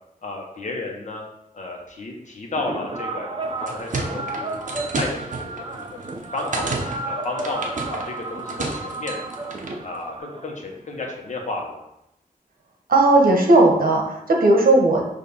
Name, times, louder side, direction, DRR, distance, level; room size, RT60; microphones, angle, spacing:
voice 1, 0.2-1.2 1.5-6.0 6.3-9.3 9.8-11.8, left 2 dB, 55° left, 0 dB, 1.3 m, -33 dB
sound 1, 2.6-11.1, right 2 dB, 35° right, 0.6 m, -33 dB
sound 2, 3.4-9.8, right 3 dB, 60° right, 0.9 m, -32 dB
voice 2, 12.9-15.1, right 2 dB, 75° right, 0 dB, 1.2 m, -16 dB
6.8 x 2.8 x 5.5 m, 0.83 s
wide cardioid pair, 155°, 15 cm